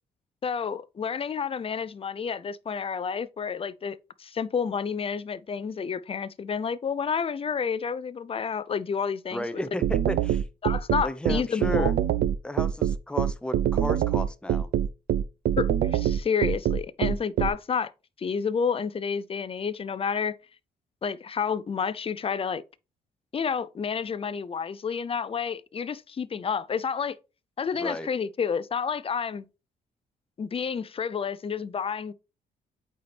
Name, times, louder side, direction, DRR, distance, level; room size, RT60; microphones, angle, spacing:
voice 1, 0.4-9.6 10.6-11.9 15.6-17.9 18.2-20.4 21.0-22.6 23.3-27.2 27.6-29.5 30.4-32.1, left 6 dB, 35° left, 0.5 m, -30 dB
voice 2, 9.3-10.4 11.0-11.9 12.4-14.7 27.8-28.1, left 1 dB, 5° left, 0.8 m, -33 dB
sound 1, 9.8-17.5, right 10 dB, 70° right, 0.5 m, -24 dB
8.3 x 4.3 x 3.3 m
cardioid pair, 75°, 17 cm